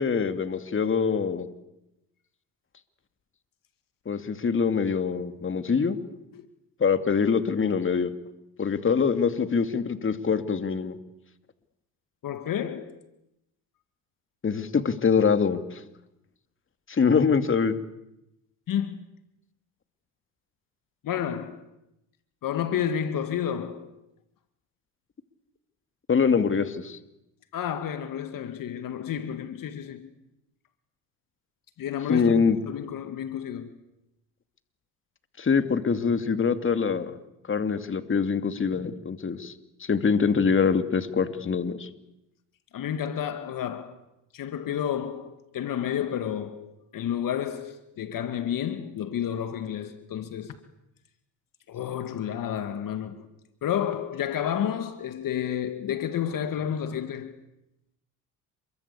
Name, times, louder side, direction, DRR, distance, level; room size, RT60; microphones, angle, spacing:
voice 1, 0.0-1.5 4.1-6.0 6.8-8.1 8.6-11.0 14.4-15.8 16.9-17.7 26.1-27.0 32.1-32.6 35.4-37.2 37.5-39.5 39.8-41.9, left 5 dB, 30° left, 2.6 m, -24 dB
voice 2, 12.2-13.0 18.7-19.0 21.0-21.6 22.4-23.9 27.5-30.1 31.8-33.7 42.7-44.0 44.3-50.6 51.7-53.3 53.6-57.3, left 9 dB, 55° left, 2.1 m, -31 dB
28.0 x 23.5 x 8.5 m
supercardioid pair, 75°, 39 cm